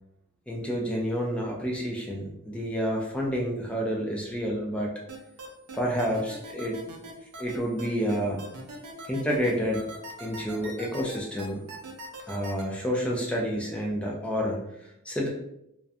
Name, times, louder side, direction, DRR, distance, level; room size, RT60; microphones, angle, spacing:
voice 1, 0.5-5.0 5.7-6.8 7.4-8.4 9.1-9.9 10.2-11.6 12.3-15.3, equal, 5° left, -2 dB, 0.3 m, -29 dB
sound 1, 5.1-12.6, right 1 dB, 85° right, 0.5 m, -41 dB
2.4 x 2.1 x 2.5 m, 0.80 s
head